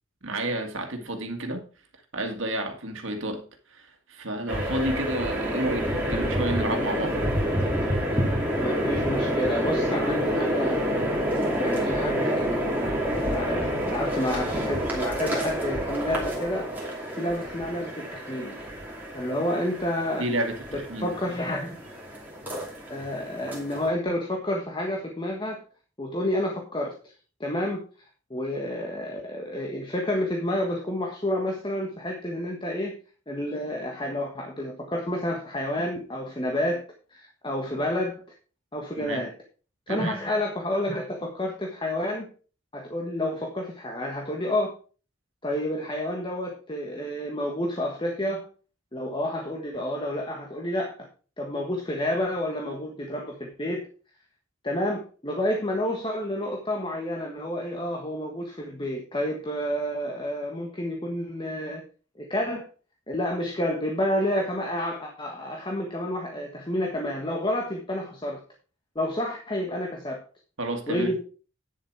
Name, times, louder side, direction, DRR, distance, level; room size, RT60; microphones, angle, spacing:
voice 1, 0.2-1.7 2.1-3.4 3.7-7.2 20.2-21.1 39.0-39.3 39.9-40.2 70.6-71.2, right 1 dB, 75° right, 5 dB, 2.0 m, -30 dB
sound 1, 4.5-23.9, equal, 10° right, 2.7 m, -28 dB
voice 2, 8.6-11.1 11.6-16.7 17.2-18.6 19.1-20.3 20.7-21.8 22.9-25.6 26.0-27.1 27.4-27.8 28.3-32.9 33.3-36.8 37.1-38.1 38.7-39.3 39.9-42.3 42.7-44.7 45.4-48.5 48.9-50.9 51.4-53.9 54.6-61.8 62.2-62.6 63.1-68.4 68.9-70.2 70.9-71.2, left 1 dB, 25° left, 0 dB, 1.4 m, -29 dB
9.7 x 7.3 x 4.6 m, 0.37 s
head